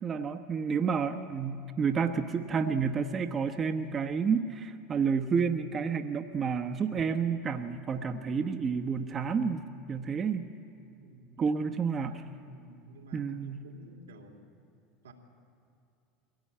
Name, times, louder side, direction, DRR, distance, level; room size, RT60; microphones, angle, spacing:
voice 1, 0.0-10.5 11.4-12.2 13.1-13.6, right 6 dB, 35° right, 7 dB, 1.1 m, -30 dB
voice 2, 11.0-11.6 12.0-14.5 15.0-15.1, right 1 dB, 85° right, 2 dB, 2.9 m, -52 dB
22.5 x 16.5 x 8.7 m, 2.6 s
hypercardioid pair, 80°, 0 cm